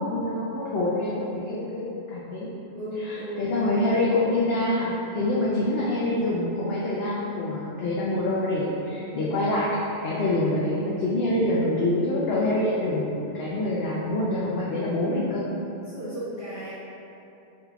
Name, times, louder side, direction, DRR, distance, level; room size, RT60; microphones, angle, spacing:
voice 1, 0.0-2.5 3.0-9.7 10.0-15.4, left 1 dB, 65° left, -7 dB, 0.8 m, -26 dB
voice 2, 2.7-3.5 15.8-16.7, equal, 30° right, -14 dB, 1.0 m, -34 dB
4.1 x 3.9 x 2.3 m, 2.9 s
omnidirectional pair, 1.2 m